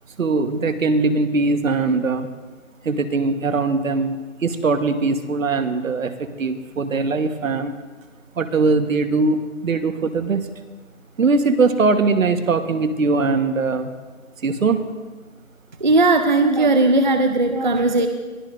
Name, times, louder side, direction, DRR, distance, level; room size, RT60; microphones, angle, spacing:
voice 1, 0.2-2.3 2.8-7.8 8.4-10.5 11.2-13.9 14.4-14.9, right 3 dB, 70° right, 8 dB, 1.4 m, -21 dB
voice 2, 15.8-18.1, right 2 dB, 35° right, 7 dB, 0.6 m, -17 dB
22.0 x 14.5 x 2.6 m, 1.3 s
hypercardioid pair, 175°, 41 cm